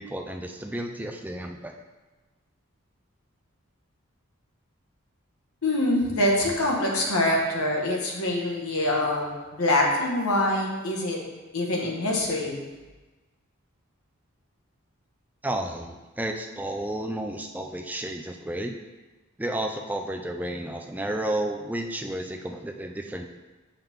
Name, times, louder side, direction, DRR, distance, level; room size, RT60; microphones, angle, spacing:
voice 1, 0.0-1.8 15.4-18.8 19.4-23.3, right 1 dB, 5° right, 3 dB, 0.4 m, -32 dB
voice 2, 5.6-11.2 11.5-12.6, left 1 dB, 85° left, -1 dB, 1.4 m, -25 dB
7.2 x 5.7 x 3.6 m, 1.2 s
head